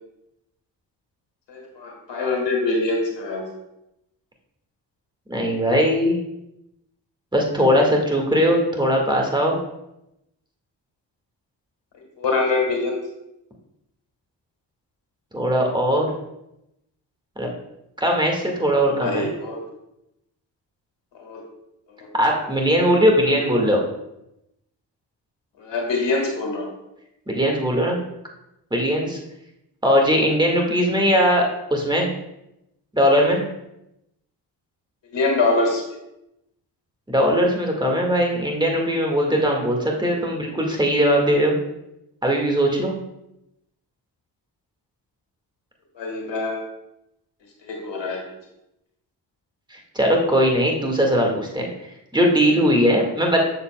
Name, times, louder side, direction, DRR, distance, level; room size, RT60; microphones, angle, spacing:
voice 1, 1.5-3.4 12.2-13.0 18.7-19.6 21.1-21.4 22.0-22.1 25.6-26.7 35.1-35.8 46.0-46.6 47.6-48.2, left 3 dB, 75° left, 1 dB, 1.8 m, -24 dB
voice 2, 5.3-6.2 7.3-9.6 15.3-16.1 17.4-17.5 18.0-19.3 22.1-23.8 27.3-28.0 28.7-29.2 29.8-31.4 31.7-32.1 32.9-33.5 37.1-41.6 42.2-42.9 49.7-51.7 52.1-53.4, equal, 10° right, 0 dB, 1.8 m, -19 dB
6.9 x 6.8 x 2.3 m, 0.86 s
supercardioid pair, 45°, 44 cm